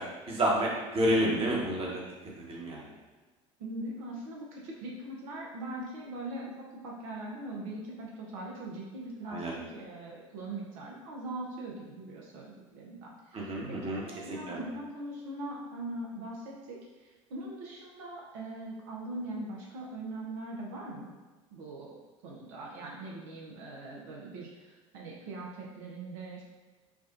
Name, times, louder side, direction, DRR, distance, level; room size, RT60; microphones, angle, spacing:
voice 1, 0.0-2.0 2.4-2.9 9.3-9.6 13.3-14.0 14.3-14.6, equal, 35° right, -3 dB, 1.2 m, -30 dB
voice 2, 3.6-13.6 13.8-21.1 21.5-22.0 22.2-26.4, right 2 dB, 70° right, -3 dB, 0.8 m, -41 dB
4.8 x 2.4 x 2.6 m, 1.3 s
hypercardioid pair, 70°, 17 cm